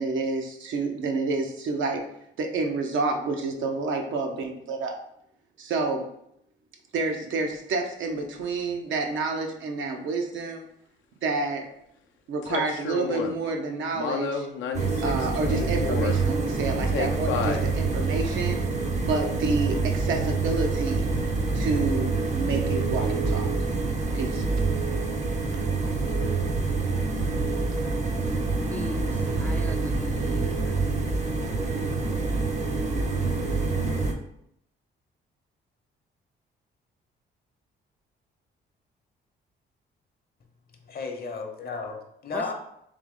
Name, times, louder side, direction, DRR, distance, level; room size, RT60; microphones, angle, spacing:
voice 1, 0.0-2.0 2.4-4.9 5.6-6.0 6.9-10.7 11.2-11.7 12.3-14.5 15.0-18.6 19.1-21.1 21.5-23.5 24.1-24.5 27.7-27.9, right 3 dB, 75° right, 3 dB, 0.7 m, -29 dB
sound 1, 7.5-7.6 12.4-13.4 13.9-16.2 16.9-17.6 18.5-18.6, left 6 dB, 75° left, 0.5 m, -31 dB
sound 2, 14.7-34.1, right 3 dB, 35° right, 0.7 m, -26 dB
voice 2, 28.7-30.8 42.3-42.5, left 1 dB, 10° left, 4 dB, 0.4 m, -38 dB
voice 3, 40.9-42.5, left 4 dB, 50° left, 4 dB, 0.8 m, -34 dB
3.5 x 3.0 x 3.7 m, 0.75 s
cardioid pair, 90°, 20 cm